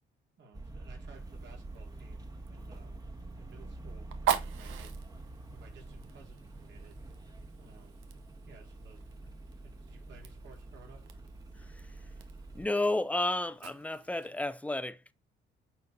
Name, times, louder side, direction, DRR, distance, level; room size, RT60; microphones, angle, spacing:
voice 1, 0.4-3.1 3.4-4.9 5.5-7.0 7.6-11.0, right 4 dB, 65° right, 3.8 m, -57 dB
sound 1, 0.5-12.7, right 2 dB, 20° right, 1.4 m, -46 dB
Fire, 1.1-14.4, right 9 dB, 90° right, 1.0 m, -42 dB
voice 2, 12.5-15.1, left 2 dB, 5° left, 0.7 m, -32 dB
8.9 x 4.6 x 3.7 m
cardioid pair, 90°, 20 cm